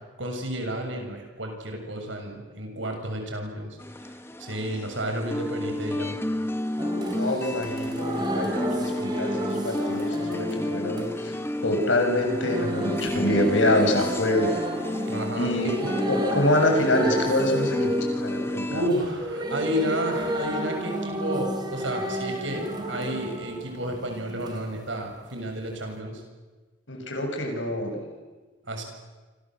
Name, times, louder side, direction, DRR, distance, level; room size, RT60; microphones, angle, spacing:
voice 1, 0.2-3.7 4.4-6.1 15.1-15.8 18.7-26.2 28.7-28.8, right 1 dB, 75° right, 3 dB, 7.1 m, -31 dB
sound 1, 3.8-18.9, left 1 dB, 10° left, 1.4 m, -31 dB
sound 2, 6.8-24.6 25.9-26.0, equal, 20° right, 3.4 m, -32 dB
voice 2, 7.1-14.6 15.3-18.9 26.9-28.1, left 1 dB, 75° left, 3 dB, 7.6 m, -26 dB
29.5 x 26.0 x 7.9 m, 1.3 s
head